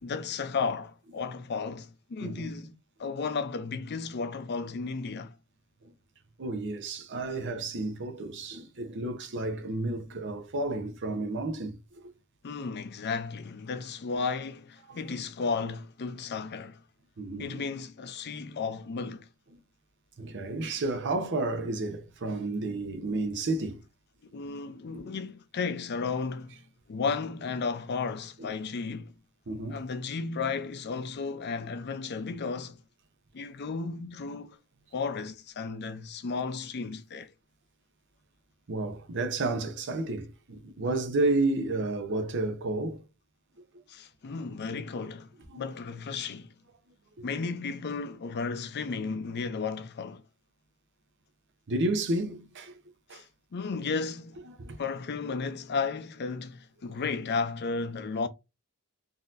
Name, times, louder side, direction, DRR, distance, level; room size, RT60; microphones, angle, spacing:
voice 1, 0.0-2.7 3.0-5.3 12.4-16.8 17.4-19.3 24.3-26.6 26.9-29.1 29.7-32.8 33.3-34.6 34.9-37.3 43.9-46.5 47.2-50.2 53.1-53.2 53.5-54.4 54.8-58.3, left 4 dB, 50° left, 0.5 m, -34 dB
voice 2, 6.4-11.8 14.9-15.0 17.2-17.6 20.2-23.8 28.4-28.5 29.5-29.8 38.7-43.0 45.5-45.6 51.7-52.8 53.1-53.2 54.6-54.8, right 2 dB, 55° right, 0.7 m, -31 dB
3.9 x 2.7 x 2.5 m
head